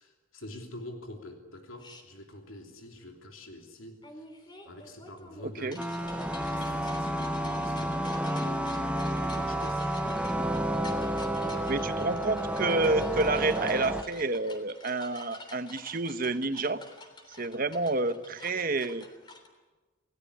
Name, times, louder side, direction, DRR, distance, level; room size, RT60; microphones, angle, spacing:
voice 1, 0.0-5.9 6.5-10.2 11.3-12.4, left 1 dB, 80° left, 3 dB, 3.2 m, -47 dB
sound 1, 1.8-2.0 4.0-19.5, left 2 dB, 20° left, 3.3 m, -49 dB
sound 2, 5.8-14.0, right 1 dB, 5° right, 1.2 m, -30 dB
voice 2, 11.7-16.8 17.4-19.0, right 3 dB, 45° right, 11 dB, 1.1 m, -29 dB
28.0 x 18.0 x 9.9 m, 1.3 s
head